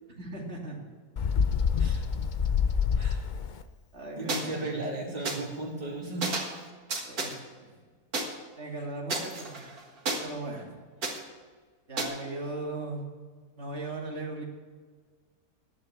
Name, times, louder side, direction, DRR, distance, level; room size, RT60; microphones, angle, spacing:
voice 1, 0.2-0.8 3.9-4.6 7.0-7.8 8.6-9.6 10.2-10.8 11.9-13.0 13.6-14.4, right 2 dB, 45° right, -1 dB, 2.7 m, -38 dB
Bird, 1.2-3.6, left 6 dB, 55° left, 0.5 m, -26 dB
voice 2, 4.2-6.4, right 2 dB, 25° right, -3 dB, 2.9 m, -35 dB
sound 1, 4.3-4.4 5.2-5.4 6.2-6.6 6.9-7.3 8.1-8.2 9.1-10.2 11.0-11.2 12.0-12.1, right 3 dB, 75° right, 2.2 m, -31 dB
10.5 x 9.1 x 8.1 m, 1.5 s
omnidirectional pair, 1.6 m